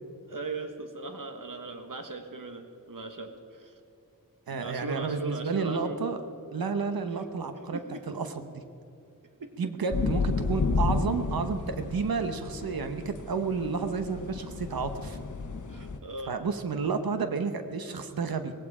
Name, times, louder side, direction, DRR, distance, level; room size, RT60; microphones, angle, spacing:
voice 1, 0.3-3.8 4.5-6.0 7.1-7.2 7.7-8.0 9.4-9.5 15.7-16.3, right 3 dB, 65° right, 6 dB, 1.5 m, -39 dB
voice 2, 4.5-6.2 6.5-7.8 8.1-8.6 9.6-15.2 16.3-18.5, right 5 dB, 85° right, 8 dB, 1.0 m, -31 dB
sound 1, 9.9-16.0, left 4 dB, 60° left, 1.0 m, -32 dB
17.5 x 16.0 x 4.9 m, 2.7 s
wide cardioid pair, 60°, 35 cm